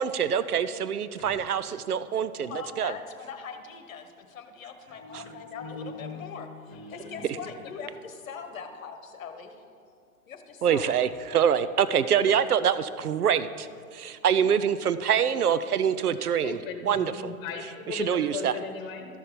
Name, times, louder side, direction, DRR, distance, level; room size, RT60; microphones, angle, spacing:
voice 1, 0.0-2.5 2.8-2.9 5.1-5.2 10.6-13.7 13.9-16.6 16.9-17.3 17.9-18.5, right 8 dB, 90° right, 14 dB, 0.5 m, -25 dB
voice 2, 2.4-6.5 6.9-9.6 10.3-11.0 16.2-16.3, left 6 dB, 65° left, 7 dB, 1.2 m, -41 dB
voice 3, 4.7-6.4 6.6-7.6 8.4-8.7 9.6-10.1 16.4-19.1, left 6 dB, 40° left, 5 dB, 1.6 m, -39 dB
13.0 x 5.9 x 5.1 m, 2.2 s
figure-of-eight pair, 110°, 44 cm